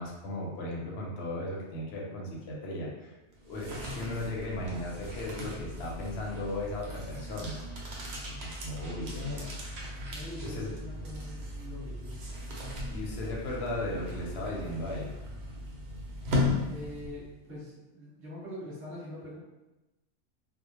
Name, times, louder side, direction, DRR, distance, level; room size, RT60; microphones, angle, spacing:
voice 1, 0.0-3.1 3.4-7.6 8.3-9.5 10.4-10.7 12.9-15.1, left 1 dB, 70° left, -2 dB, 0.8 m, -36 dB
sound 1, 3.3-17.4, left 2 dB, 65° right, 0.8 m, -37 dB
voice 2, 9.1-9.5 10.1-12.1 16.7-19.4, left 1 dB, 10° right, -9 dB, 0.8 m, -43 dB
2.1 x 2.1 x 2.9 m, 1.0 s
omnidirectional pair, 1.3 m